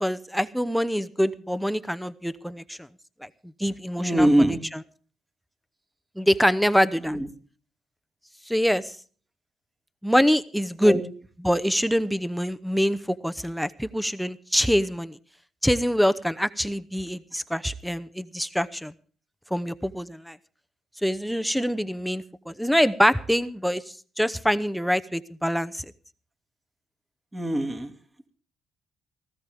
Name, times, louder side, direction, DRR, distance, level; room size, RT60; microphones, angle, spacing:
voice 1, 0.0-2.9 3.2-3.3 3.6-4.8 6.2-7.2 8.5-8.8 10.0-11.0 11.4-15.2 15.6-18.9 19.5-20.4 21.0-23.8 24.2-25.8, equal, ahead, 11 dB, 0.8 m, -25 dB
voice 2, 4.0-4.6 7.1-7.2 10.8-11.0 27.3-27.9, right 1 dB, 15° right, 5 dB, 2.4 m, -22 dB
19.0 x 15.5 x 3.5 m, 0.42 s
cardioid pair, 90°, 0 cm